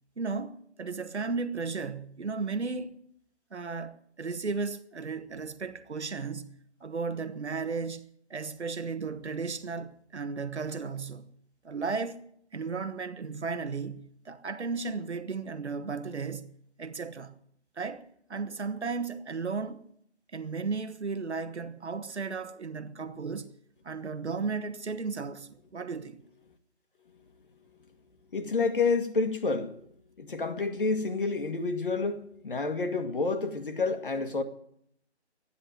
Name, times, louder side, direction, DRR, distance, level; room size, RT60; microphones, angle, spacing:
voice 1, 0.2-3.0 3.5-11.2 11.6-12.2 12.5-16.5 16.8-17.3 17.8-19.9 20.3-23.5 23.8-26.2, right 4 dB, 75° right, 1.4 m, -35 dB
voice 2, 28.3-29.7 30.2-34.4, left 4 dB, 50° left, 1.7 m, -29 dB
13.5 x 10.0 x 9.0 m
figure-of-eight pair, 170°, 34 cm